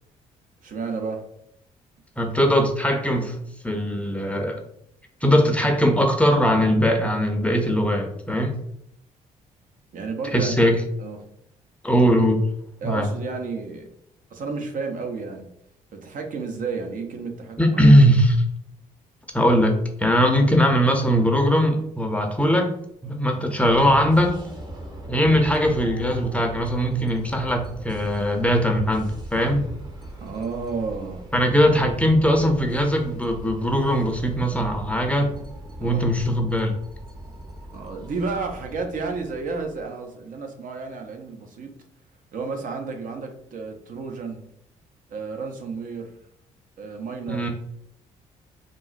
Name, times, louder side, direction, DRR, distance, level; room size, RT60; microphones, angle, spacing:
voice 1, 0.6-1.3 9.9-10.6 11.0-11.2 12.8-13.9 14.3-15.5 15.9-18.0 30.2-31.3 35.8-36.1 37.7-41.8 42.3-44.5 45.1-46.2 46.8-47.4, right 4 dB, 60° right, 3 dB, 0.7 m, -31 dB
voice 2, 2.2-3.4 3.6-4.6 5.2-8.6 10.3-10.7 11.8-12.4 12.8-13.1 17.6-18.4 19.3-22.7 23.0-24.4 25.1-29.6 31.3-35.4 35.8-36.8 47.3-47.5, equal, 10° left, 3 dB, 0.6 m, -20 dB
sound 1, 23.6-39.8, right 1 dB, 30° right, 0.8 m, -40 dB
3.7 x 2.0 x 2.4 m, 0.73 s
supercardioid pair, 60°, 16 cm